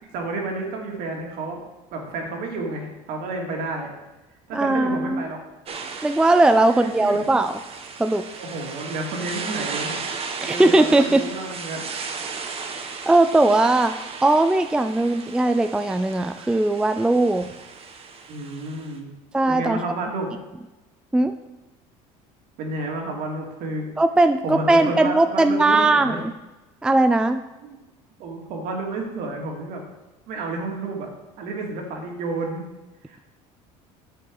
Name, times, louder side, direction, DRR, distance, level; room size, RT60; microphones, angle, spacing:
voice 1, 0.0-1.6 1.9-3.9 4.5-5.4 6.7-7.2 8.4-10.0 10.4-11.9 18.3-19.1 19.5-20.3 22.6-23.9 24.4-26.2 27.6-27.8 28.2-29.8 30.3-31.1 31.4-32.6 33.1-33.2, right 2 dB, 65° right, 0 dB, 2.5 m, -30 dB
voice 2, 4.5-5.2 6.0-7.6 8.0-8.2 10.4-11.2 12.7-13.9 14.2-17.5 19.3-19.8 21.1-21.3 24.0-26.2 26.8-27.4, right 2 dB, 5° right, 9 dB, 0.4 m, -19 dB
sound 1, 5.7-19.0, right 5 dB, 40° right, 1.2 m, -35 dB
9.3 x 7.1 x 4.8 m, 1.1 s
supercardioid pair, 110°, 16 cm